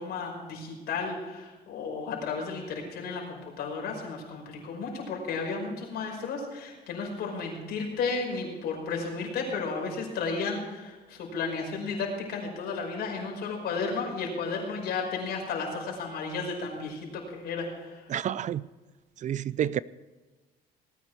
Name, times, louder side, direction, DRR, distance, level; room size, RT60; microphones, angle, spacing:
voice 1, 0.0-18.0, left 4 dB, 70° left, 5.3 m, -33 dB
voice 2, 18.1-18.6 19.2-19.8, right 10 dB, 45° right, 0.4 m, -29 dB
18.5 x 9.8 x 4.6 m
cardioid pair, 110°, 17 cm